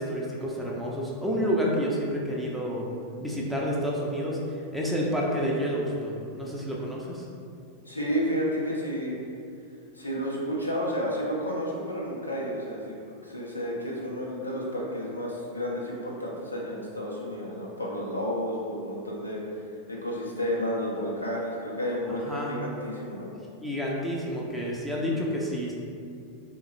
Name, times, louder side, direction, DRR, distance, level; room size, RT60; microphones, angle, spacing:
voice 1, 0.0-2.9 3.2-4.4 4.7-7.2 22.1-22.5 23.6-25.7, equal, ahead, -4 dB, 0.5 m, -29 dB
voice 2, 7.9-9.2 9.9-13.0 13.2-19.4 19.9-23.3, equal, 85° left, -4 dB, 0.5 m, -31 dB
3.6 x 2.1 x 3.1 m, 2.3 s
figure-of-eight pair, 90°, 0 cm